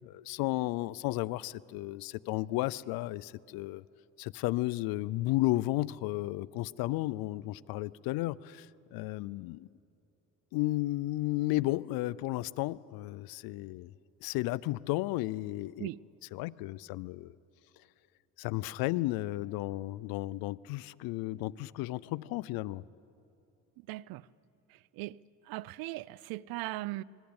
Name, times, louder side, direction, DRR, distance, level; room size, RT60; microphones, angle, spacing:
voice 1, 0.0-3.8 4.2-9.7 10.5-13.9 14.2-15.9 16.3-17.3 18.4-22.8, left 18 dB, 85° left, 0.6 m, -33 dB
voice 2, 23.9-24.3 24.7-25.2 25.5-27.0, right 19 dB, 80° right, 0.6 m, -39 dB
26.5 x 20.5 x 8.8 m
cardioid pair, 95°, 35 cm